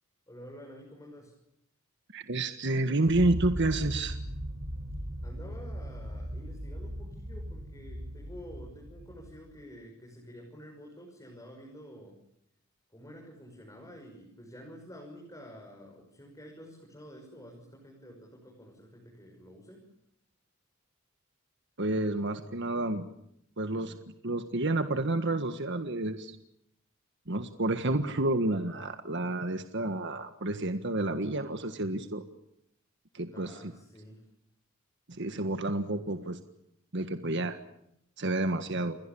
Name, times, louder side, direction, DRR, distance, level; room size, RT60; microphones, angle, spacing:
voice 1, 0.3-1.3 5.2-12.2 12.9-19.8 33.3-34.2, equal, 15° left, -1 dB, 6.6 m, -49 dB
voice 2, 2.1-4.2 21.8-23.1 23.6-24.0 24.2-26.4 27.3-32.2 33.1-33.7 35.1-36.4 36.9-37.6 38.2-39.0, right 2 dB, 60° right, 8 dB, 1.6 m, -30 dB
sound 1, 3.1-9.6, equal, 80° right, 6.5 m, -38 dB
29.5 x 21.5 x 7.1 m, 0.77 s
head